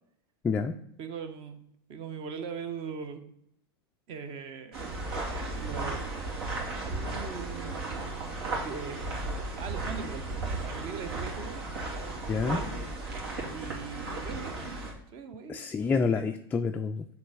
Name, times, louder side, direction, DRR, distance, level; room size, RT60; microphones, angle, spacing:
voice 1, 0.4-0.8 12.3-12.6 15.5-17.1, left 5 dB, 15° left, 5 dB, 0.3 m, -28 dB
voice 2, 1.0-1.6 1.9-3.3 4.1-4.8 5.5-6.1 6.7-7.9 8.5-9.1 9.6-11.6 12.4-12.8 13.5-14.8 15.1-15.7 16.1-16.3, right 6 dB, 45° right, 9 dB, 1.0 m, -40 dB
sound 1, 4.7-14.9, right 2 dB, 85° right, 2.4 m, -35 dB
6.2 x 3.4 x 6.0 m, 0.73 s
hypercardioid pair, 120°, 13 cm